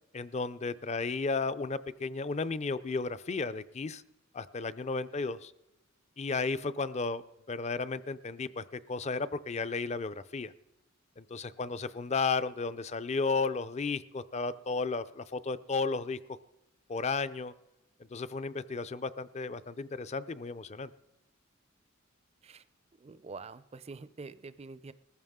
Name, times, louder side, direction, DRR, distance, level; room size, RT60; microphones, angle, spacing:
voice 1, 0.1-4.0 4.3-5.5 6.2-7.2 7.5-10.5 11.2-16.2 16.9-17.5 18.1-20.9, left 4 dB, 35° left, 14 dB, 0.5 m, -33 dB
voice 2, 23.0-24.9, right 4 dB, 30° right, 15 dB, 0.4 m, -46 dB
20.5 x 14.5 x 3.7 m, 0.95 s
head